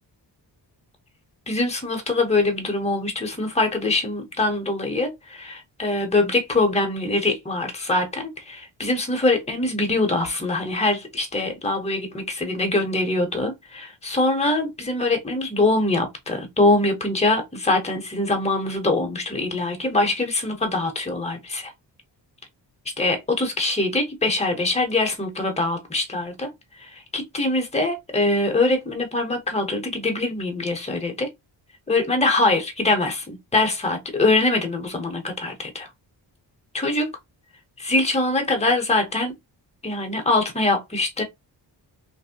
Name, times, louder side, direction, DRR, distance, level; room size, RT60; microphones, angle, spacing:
voice 1, 1.5-21.7 23.0-26.5 26.8-31.3 31.9-35.9 36.7-37.1 37.8-39.3 39.8-41.2, left 2 dB, 15° left, 0.8 m, -23 dB
2.9 x 2.6 x 2.8 m
wide cardioid pair, 115°, 44 cm